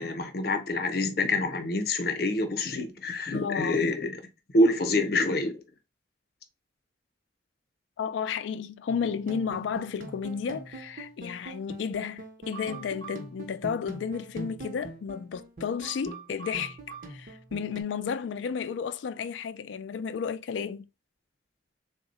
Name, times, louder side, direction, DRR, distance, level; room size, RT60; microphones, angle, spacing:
voice 1, 0.0-4.2 4.5-5.6, left 2 dB, 55° left, 0.7 m, -26 dB
voice 2, 3.3-3.9 8.0-16.8 17.1-20.9, left 6 dB, 85° left, 0.3 m, -33 dB
sound 1, 8.9-17.8, right 2 dB, 50° right, 0.8 m, -43 dB
3.7 x 2.1 x 4.0 m
head